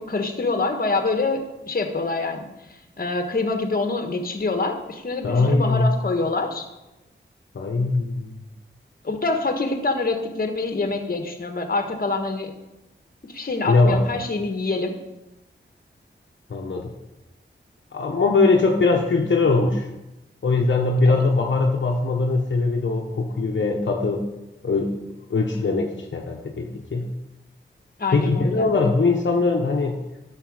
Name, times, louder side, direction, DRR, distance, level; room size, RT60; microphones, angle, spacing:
voice 1, 0.0-2.5 3.0-6.7 9.0-12.5 13.2-15.0 21.0-21.2 28.0-28.7, left 3 dB, 45° left, 5 dB, 1.3 m, -26 dB
voice 2, 5.2-5.9 7.5-8.4 13.7-14.0 16.5-16.9 17.9-19.9 20.4-24.2 24.6-25.0 25.3-27.1 28.1-30.0, left 3 dB, 65° left, 0 dB, 1.0 m, -21 dB
11.0 x 6.8 x 4.9 m, 0.99 s
wide cardioid pair, 75°, 20 cm